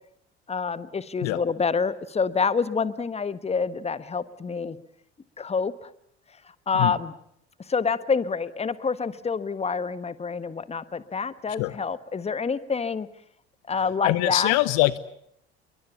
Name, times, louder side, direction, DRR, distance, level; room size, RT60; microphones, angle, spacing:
voice 1, 0.5-4.8 5.4-5.9 6.7-7.1 7.7-13.1 13.7-14.6, left 5 dB, 20° left, 15 dB, 1.4 m, -27 dB
voice 2, 14.0-15.0, left 19 dB, 55° left, 18 dB, 1.0 m, -23 dB
28.5 x 23.0 x 7.1 m, 0.73 s
figure-of-eight pair, 60°, 32 cm